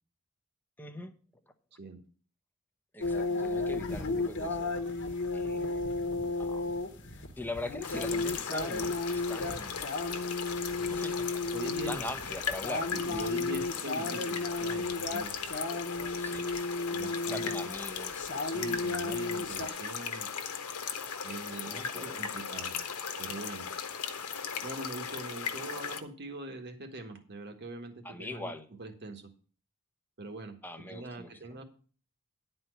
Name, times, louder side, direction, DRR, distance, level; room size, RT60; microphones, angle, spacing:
voice 1, 0.8-1.1 2.9-4.8 5.3-5.7 6.4-6.7 7.4-9.9 10.9-11.3 11.9-13.4 16.0-16.5 17.3-18.3 19.1-19.4 21.6-22.2 28.0-28.7 30.6-31.6, left 1 dB, 10° left, 7 dB, 0.8 m, -42 dB
sound 1, 3.0-19.7, left 3 dB, 55° left, 1.2 m, -34 dB
sound 2, 7.8-26.0, left 6 dB, 85° left, 1.1 m, -38 dB
voice 2, 11.5-12.0 12.9-15.3 16.9-17.7 18.4-20.3 21.2-22.8 23.2-23.7 24.6-28.5 28.8-29.3 30.2-31.6, right 2 dB, 50° right, 6 dB, 1.5 m, -42 dB
11.0 x 4.4 x 7.9 m, 0.40 s
head